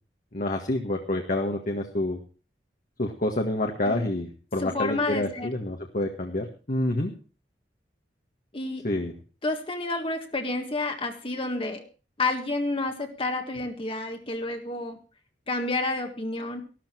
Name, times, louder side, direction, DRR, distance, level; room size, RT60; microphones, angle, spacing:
voice 1, 0.3-2.2 3.0-7.1 8.8-9.1, left 1 dB, 50° left, 2 dB, 1.8 m, -28 dB
voice 2, 4.6-5.5 8.5-8.9 9.4-11.8 12.2-15.0 15.5-16.6, left 2 dB, 30° left, 4 dB, 1.8 m, -29 dB
13.5 x 13.0 x 4.6 m, 0.35 s
head